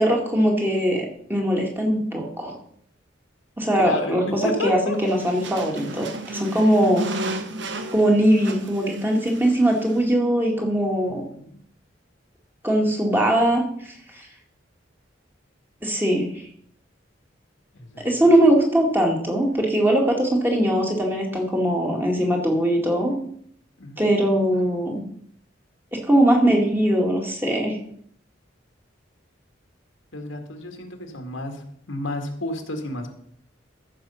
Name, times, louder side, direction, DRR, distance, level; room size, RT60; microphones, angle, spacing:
voice 1, 0.0-2.6 3.6-7.1 7.9-11.2 12.6-14.3 15.8-16.3 18.0-23.1 24.0-25.0 25.9-27.8, right 1 dB, 10° right, 0 dB, 2.0 m, -21 dB
voice 2, 3.7-5.0 11.1-11.6 17.7-18.1 23.8-24.1 30.1-33.1, left 1 dB, 85° left, 5 dB, 1.9 m, -31 dB
sound 1, 4.9-10.1, right 2 dB, 65° right, 1.2 m, -33 dB
14.5 x 6.3 x 5.6 m, 0.66 s
head